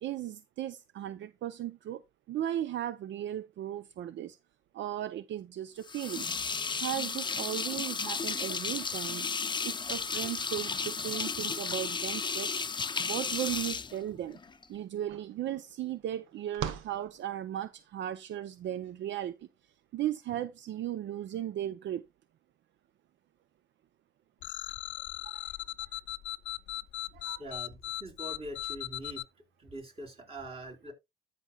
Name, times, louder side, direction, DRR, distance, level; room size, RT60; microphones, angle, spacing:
voice 1, 0.0-2.0 2.3-4.4 4.7-6.3 6.8-9.3 9.6-12.5 13.0-14.4 14.7-22.0 25.2-25.5 27.1-27.5, right 11 dB, 70° right, 0.6 m, -36 dB
sound 1, 5.8-14.6, left 5 dB, 25° left, 0.6 m, -34 dB
sound 2, 14.5-14.6 14.8-17.9, right 8 dB, 85° right, 1.1 m, -42 dB
sound 3, 24.4-29.2, left 14 dB, 65° left, 0.5 m, -38 dB
voice 2, 27.4-29.2 29.6-30.9, right 1 dB, 30° right, 4.2 m, -43 dB
13.5 x 6.0 x 2.3 m
cardioid pair, 90°, 20 cm